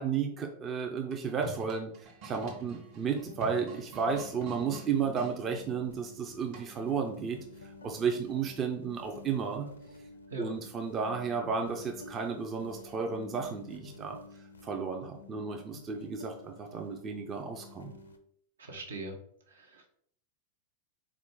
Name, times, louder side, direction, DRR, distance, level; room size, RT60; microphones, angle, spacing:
voice 1, 0.0-1.9 2.2-7.4 7.8-9.7 10.4-14.2 14.6-17.9, right 6 dB, 25° right, 3 dB, 0.4 m, -33 dB
sound 1, 1.0-5.3 6.5-6.9, right 3 dB, 45° right, 1.1 m, -46 dB
sound 2, 2.4-18.2, left 4 dB, 70° left, 0.4 m, -51 dB
voice 2, 18.6-19.1 19.5-19.9, right 2 dB, 70° right, 1 dB, 0.8 m, -41 dB
4.2 x 2.4 x 3.6 m, 0.65 s
figure-of-eight pair, 90°, 0 cm